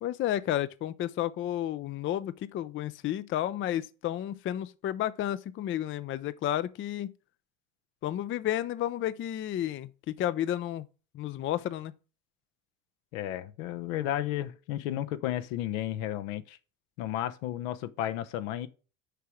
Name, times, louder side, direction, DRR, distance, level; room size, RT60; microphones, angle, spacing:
voice 1, 0.0-7.1 8.0-10.8 11.1-11.9, left 12 dB, 30° left, 0.4 m, -32 dB
voice 2, 13.1-16.6 17.0-18.7, left 12 dB, 75° left, 0.9 m, -33 dB
6.7 x 4.6 x 6.3 m
supercardioid pair, 90°, 41 cm